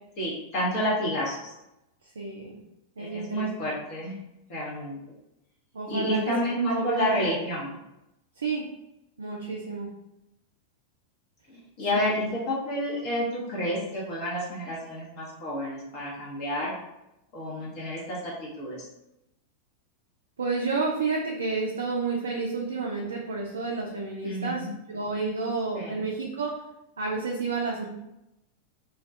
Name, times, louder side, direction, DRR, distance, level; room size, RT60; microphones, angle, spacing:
voice 1, 0.2-1.5 3.0-4.2 4.5-5.0 5.9-7.7 11.5-16.7 17.3-18.3 18.6-18.8 24.2-24.7 25.7-26.0, left 1 dB, 45° left, -6 dB, 0.7 m, -30 dB
voice 2, 2.0-2.6 3.0-3.7 5.7-6.3 6.7-7.4 8.4-8.6 9.2-9.9 11.9-12.3 20.4-26.6 27.0-27.9, right 4 dB, 70° right, -1 dB, 0.3 m, -30 dB
2.2 x 2.2 x 2.5 m, 0.89 s
figure-of-eight pair, 90°, 0 cm